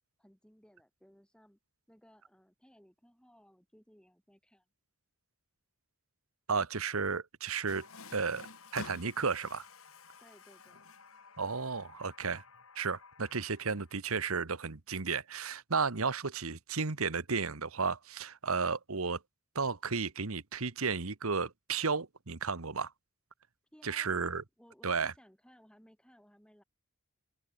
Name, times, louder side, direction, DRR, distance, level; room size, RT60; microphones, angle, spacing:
voice 1, 0.2-1.6 1.9-4.7 10.2-11.0 23.7-24.1 24.6-26.6, equal, 5° left, 6.9 m, -61 dB
voice 2, 6.5-7.9 8.1-8.5 8.7-9.7 11.4-12.4 12.7-19.2 19.5-22.9 23.8-24.4 24.8-25.1, right 5 dB, 80° right, 1.4 m, -33 dB
Water tap faucet, 7.7-14.0, left 4 dB, 75° left, 4.1 m, -51 dB
open air
head